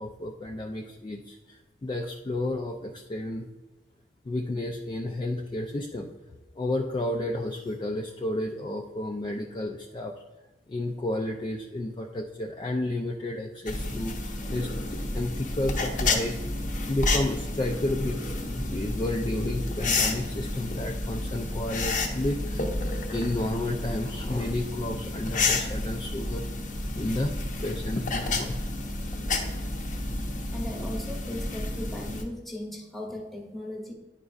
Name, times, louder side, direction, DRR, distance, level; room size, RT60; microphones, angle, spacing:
voice 1, 0.0-1.4 1.8-3.5 4.3-6.1 6.6-10.1 10.7-14.1 14.5-16.4 16.9-22.6 23.1-26.4 26.9-27.3 27.6-28.5, left 1 dB, 25° left, 1 dB, 0.3 m, -31 dB
sound 1, 13.7-32.2, left 2 dB, 45° left, 0.7 m, -30 dB
voice 2, 30.5-33.9, left 1 dB, ahead, -1 dB, 1.1 m, -37 dB
9.7 x 5.1 x 2.4 m, 1.2 s
head